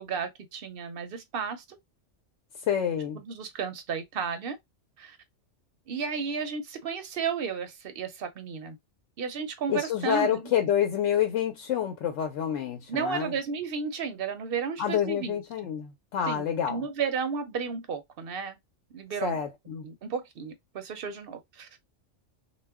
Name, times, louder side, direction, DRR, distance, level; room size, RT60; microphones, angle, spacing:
voice 1, 0.0-1.8 3.1-4.6 5.0-5.2 5.9-8.8 9.2-10.5 12.9-15.4 16.3-18.6 18.9-19.4 19.8-21.7, right 6 dB, 60° right, 0.7 m, -33 dB
voice 2, 2.7-3.2 9.7-13.3 14.8-16.9 19.2-19.8, left 9 dB, 75° left, 0.9 m, -28 dB
2.3 x 2.1 x 3.4 m
omnidirectional pair, 1.3 m